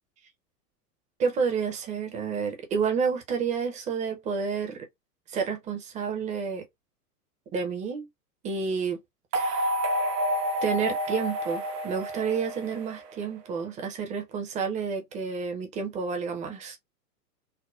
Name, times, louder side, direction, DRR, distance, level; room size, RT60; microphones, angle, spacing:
voice 1, 1.2-4.9 5.3-6.6 7.5-8.1 8.4-9.0 9.3-9.7 10.6-16.8, right 6 dB, 15° right, 0.5 m, -30 dB
sound 1, 9.3-13.5, equal, 75° right, 0.8 m, -30 dB
3.4 x 2.1 x 2.4 m
figure-of-eight pair, 105°, 47 cm